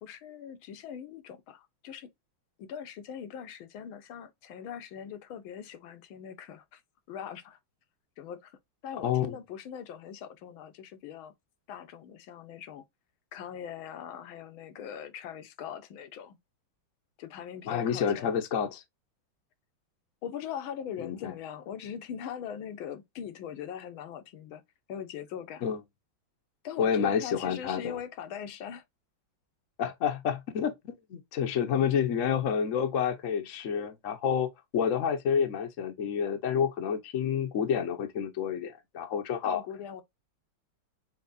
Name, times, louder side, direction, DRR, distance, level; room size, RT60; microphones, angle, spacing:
voice 1, 0.0-2.1 2.6-6.8 7.1-7.6 8.2-8.6 8.8-11.3 11.7-12.8 13.3-16.4 17.2-18.4 20.2-24.6 24.9-25.7 26.6-28.8 39.4-40.0, left 8 dB, 85° left, 1.7 m, -41 dB
voice 2, 9.0-9.3 17.7-18.8 21.0-21.3 25.6-25.8 26.8-28.0 29.8-39.6, left 7 dB, 55° left, 0.9 m, -29 dB
6.9 x 2.9 x 2.6 m
omnidirectional pair, 2.2 m